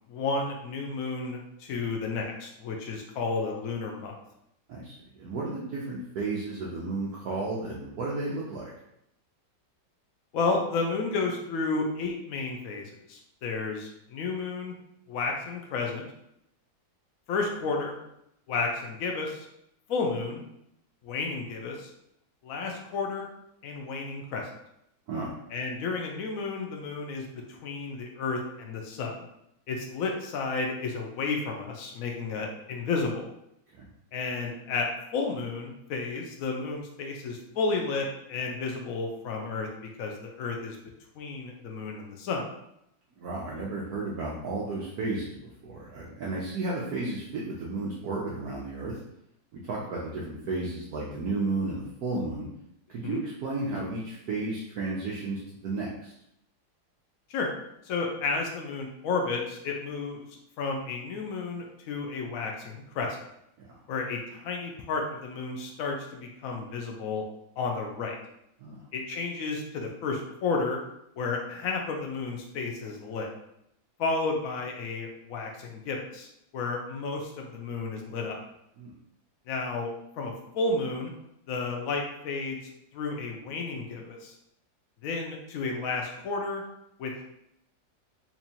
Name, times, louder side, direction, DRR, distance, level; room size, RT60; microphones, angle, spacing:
voice 1, 0.1-4.1 10.3-14.8 15.1-16.1 17.3-17.9 18.5-19.5 19.9-20.4 21.0-21.9 22.4-23.3 23.6-24.5 25.5-29.3 29.7-33.2 34.1-34.9 35.1-39.7 40.0-40.8 41.2-42.5 53.0-53.2 57.3-57.5 57.8-60.2 60.6-63.2 63.9-67.2 67.6-68.2 68.9-70.8 71.2-73.3 74.0-76.3 76.5-78.4 79.5-79.9 80.2-81.1 81.5-84.4 85.0-86.6 87.0-87.2, left 4 dB, 75° left, 1 dB, 0.8 m, -32 dB
voice 2, 4.7-8.6 25.1-25.3 33.7-33.9 43.2-48.9 49.5-52.5 52.9-56.1 68.6-68.8 78.8-78.9, right 3 dB, 70° right, -5 dB, 1.0 m, -33 dB
4.4 x 2.6 x 2.8 m, 0.79 s
omnidirectional pair, 2.1 m